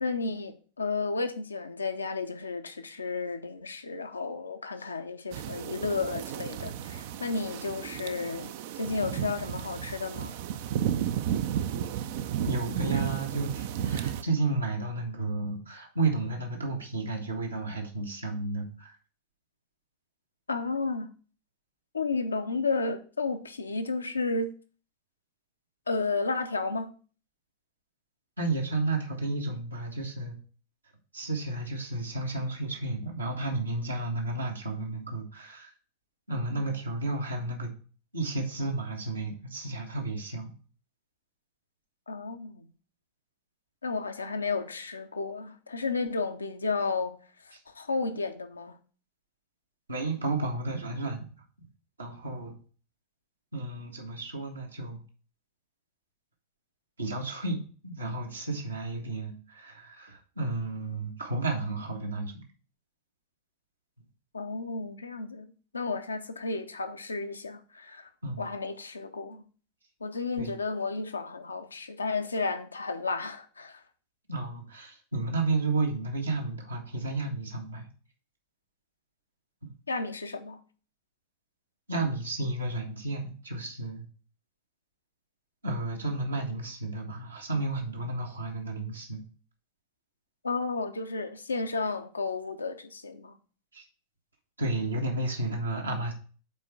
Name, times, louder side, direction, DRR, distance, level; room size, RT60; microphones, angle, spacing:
voice 1, 0.0-10.3 20.5-21.1 21.9-24.5 25.9-26.9 42.1-42.7 43.8-47.2 47.7-48.8 64.3-65.5 65.7-68.1 68.4-69.5 70.0-73.8 79.9-80.6 90.4-93.4, left 4 dB, 75° left, 0.7 m, -32 dB
sound 1, 5.3-14.2, right 10 dB, 50° right, 0.4 m, -33 dB
voice 2, 12.5-19.0 28.4-30.4 31.1-35.7 36.3-37.7 38.1-40.5 49.9-51.3 52.0-52.6 53.5-55.0 57.0-62.4 68.2-68.5 70.4-70.5 74.3-77.9 79.6-79.7 81.9-84.0 85.6-89.3 93.7-93.9 94.6-96.1, right 2 dB, 80° right, 1.5 m, -32 dB
5.4 x 4.3 x 6.2 m
figure-of-eight pair, 90°, 0 cm